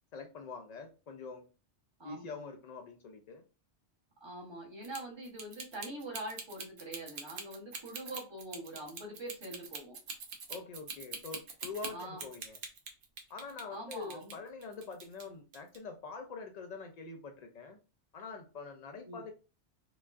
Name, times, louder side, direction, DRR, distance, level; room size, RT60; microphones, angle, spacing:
voice 1, 0.1-1.5 2.0-3.4 10.5-12.6 13.3-17.8 18.1-19.3, left 4 dB, 75° left, 4 dB, 0.3 m, -45 dB
voice 2, 2.0-2.3 4.2-10.0 11.9-12.2 13.7-14.4 19.0-19.2, right 1 dB, 25° right, -2 dB, 1.1 m, -44 dB
sound 1, 4.8-13.6 13.9-15.3 15.5-15.8, right 4 dB, 55° right, 0.8 m, -43 dB
4.8 x 2.4 x 2.5 m, 0.34 s
omnidirectional pair, 1.2 m